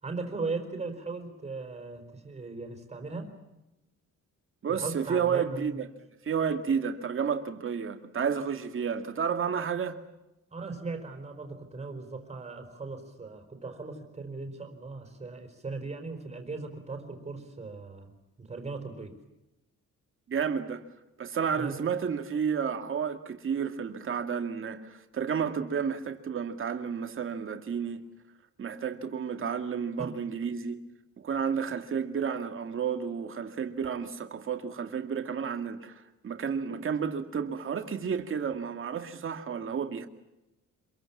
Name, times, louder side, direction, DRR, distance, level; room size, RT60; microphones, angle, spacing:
voice 1, 0.0-3.3 4.7-5.8 10.5-18.1 18.4-19.2 21.5-21.8 30.0-30.1, right 3 dB, 20° right, 4.6 m, -38 dB
voice 2, 4.6-5.9 6.2-10.0 20.3-20.8 21.2-28.0 28.6-30.8 31.2-40.1, right 7 dB, 40° right, 2.2 m, -31 dB
26.5 x 23.0 x 7.4 m
wide cardioid pair, 180°, 31 cm